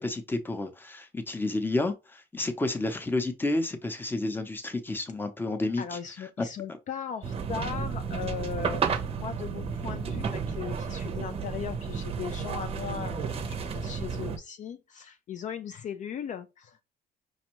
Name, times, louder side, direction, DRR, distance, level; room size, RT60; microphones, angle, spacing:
voice 1, 0.0-6.5, left 2 dB, 10° left, 0.7 m, -31 dB
voice 2, 5.8-16.8, left 8 dB, 50° left, 0.4 m, -38 dB
sound 1, 7.2-14.4, right 6 dB, 35° right, 0.6 m, -32 dB
5.2 x 2.3 x 2.9 m
cardioid pair, 110°, 17 cm